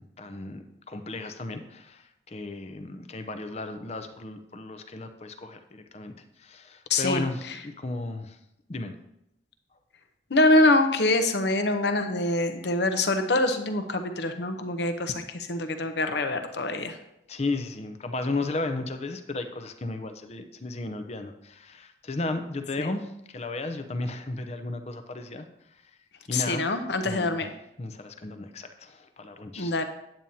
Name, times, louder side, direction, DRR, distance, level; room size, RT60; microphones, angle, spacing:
voice 1, 0.0-8.4 8.7-8.9 17.3-25.8 26.3-26.7 27.0-27.4 27.8-29.8, left 2 dB, 35° left, 8 dB, 0.6 m, -34 dB
voice 2, 6.9-7.2 10.3-17.0 22.8-22.9 26.3-27.5 29.6-29.8, left 2 dB, 65° left, 7 dB, 0.8 m, -24 dB
8.9 x 8.9 x 2.8 m, 0.83 s
head